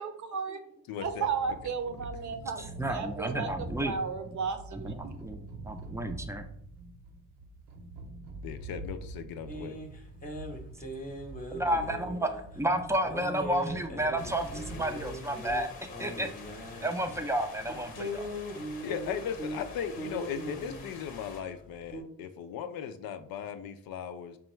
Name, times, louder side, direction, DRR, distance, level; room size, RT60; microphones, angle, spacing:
voice 1, 0.0-0.6 1.0-2.6 2.9-3.5 3.8-5.1, right 5 dB, 45° right, 7 dB, 0.7 m, -34 dB
voice 2, 0.9-1.3 1.9-2.0 8.4-9.8 18.8-24.4, left 8 dB, 60° left, 9 dB, 0.5 m, -37 dB
sound 1, 1.0-15.1, right 2 dB, 80° right, 0.7 m, -46 dB
voice 3, 2.6-4.0 4.3-4.4 4.7-6.4 11.5-16.3 16.8-18.3, right 1 dB, 5° right, 6 dB, 0.5 m, -32 dB
sound 2, 9.5-22.0, equal, 20° left, 0.9 m, -41 dB
sound 3, 14.2-21.4, left 3 dB, 80° left, 0.8 m, -47 dB
5.1 x 2.3 x 3.1 m, 0.69 s
hypercardioid pair, 55°, 42 cm